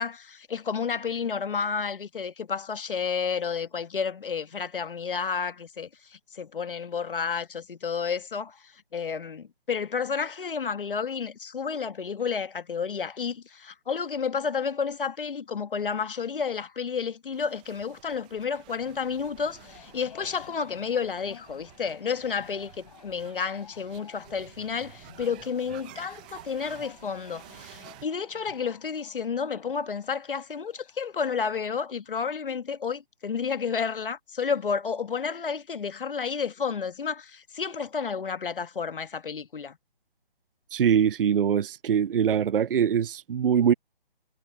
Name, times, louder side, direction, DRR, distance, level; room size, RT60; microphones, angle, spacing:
voice 1, 0.0-39.8, left 6 dB, 65° left, 1.6 m, -31 dB
sound 1, 17.3-28.1, right 17 dB, 10° right, 0.6 m, -51 dB
sound 2, 19.5-31.1, left 8 dB, 40° left, 4.8 m, -54 dB
voice 2, 40.7-43.7, right 8 dB, 65° right, 0.5 m, -23 dB
figure-of-eight pair, 155°, 29 cm